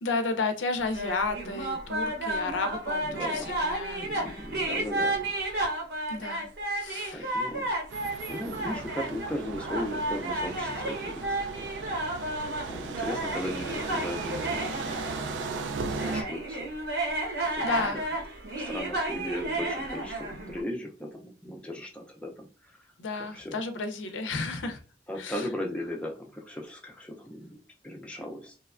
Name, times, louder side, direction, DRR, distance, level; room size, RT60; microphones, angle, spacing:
voice 1, 0.0-4.4 6.1-6.5 6.8-7.6 17.3-18.1 18.6-18.8 23.0-24.8 25.2-25.5, left 3 dB, 85° left, 8 dB, 0.5 m, -33 dB
sound 1, 0.8-20.6, right 1 dB, 55° right, 0.8 m, -32 dB
voice 2, 3.0-3.6 3.9-5.3 7.1-7.7 8.0-12.0 12.7-15.5 16.0-16.7 17.4-18.0 18.4-22.5 23.1-23.6 25.1-28.5, left 1 dB, 5° left, 0 dB, 0.4 m, -37 dB
sound 2, 7.9-16.2, right 4 dB, 80° right, 0.3 m, -37 dB
2.9 x 2.2 x 2.3 m, 0.35 s
head